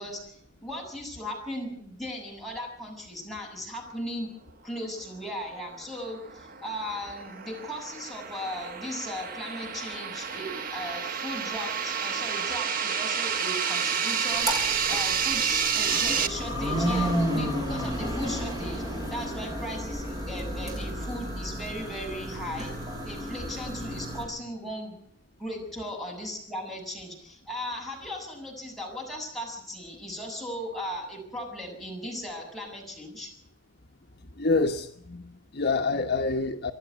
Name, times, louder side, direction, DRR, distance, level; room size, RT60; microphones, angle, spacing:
voice 1, 0.0-4.3 4.6-22.7 23.0-25.0 25.4-33.3, equal, ahead, -2 dB, 7.1 m, -37 dB
sound 1, 5.8-16.3, right 6 dB, 45° right, 1.1 m, -30 dB
sound 2, 14.3-24.2, equal, 20° right, 7.6 m, -32 dB
voice 2, 34.4-36.7, left 3 dB, 55° left, 4 dB, 1.2 m, -27 dB
27.0 x 11.5 x 9.4 m, 0.67 s
head